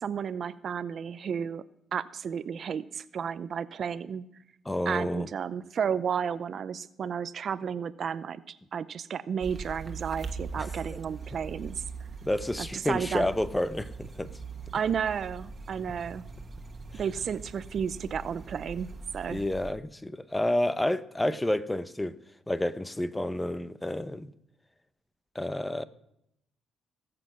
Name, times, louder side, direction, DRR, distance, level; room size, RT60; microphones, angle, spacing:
voice 1, 0.0-1.6 1.9-4.2 4.9-11.8 12.6-13.3 14.7-16.2 16.9-18.9 19.1-19.4, right 7 dB, 55° right, 15 dB, 0.6 m, -32 dB
voice 2, 4.6-5.3 10.6-10.7 12.2-14.3 19.3-22.2 22.5-24.3 25.3-25.9, left 1 dB, 10° left, 14 dB, 0.8 m, -29 dB
sound 1, 9.4-19.7, right 4 dB, 35° right, 1.7 m, -42 dB
18.5 x 7.8 x 6.2 m, 0.79 s
cardioid pair, 90°, 0 cm